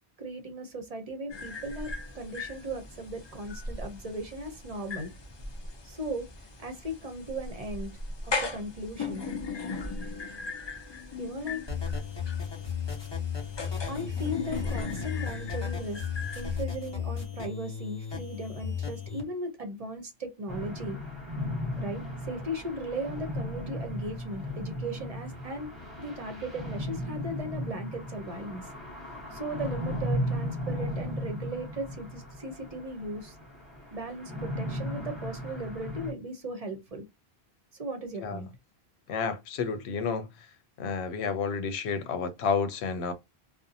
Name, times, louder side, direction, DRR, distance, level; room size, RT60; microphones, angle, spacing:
voice 1, 0.2-5.1 5.8-6.3 6.6-7.9 8.2-9.2 11.2-11.6 13.9-16.0 16.4-21.0 21.8-25.7 26.0-28.7 29.3-33.4 33.9-37.0 37.8-38.5, right 1 dB, 45° right, 0.6 m, -37 dB
sound 1, 1.3-16.6, left 3 dB, 40° left, 0.4 m, -38 dB
sound 2, 11.7-19.2, left 7 dB, 25° left, 0.9 m, -35 dB
sound 3, 20.5-36.1, left 1 dB, ahead, 0.9 m, -36 dB
voice 2, 39.1-40.3 40.8-43.1, left 5 dB, 90° left, 0.9 m, -30 dB
2.6 x 2.0 x 2.6 m
omnidirectional pair, 1.1 m